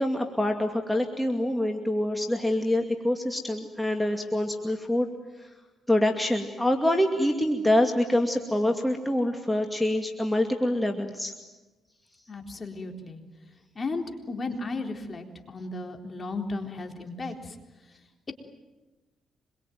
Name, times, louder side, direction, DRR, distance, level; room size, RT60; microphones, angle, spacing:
voice 1, 0.0-5.1 5.9-11.3, left 1 dB, 5° left, 3 dB, 2.4 m, -25 dB
voice 2, 12.3-13.2 13.8-17.5, left 3 dB, 35° left, 4 dB, 3.9 m, -35 dB
26.0 x 23.0 x 9.3 m, 1.1 s
cardioid pair, 90°, 0 cm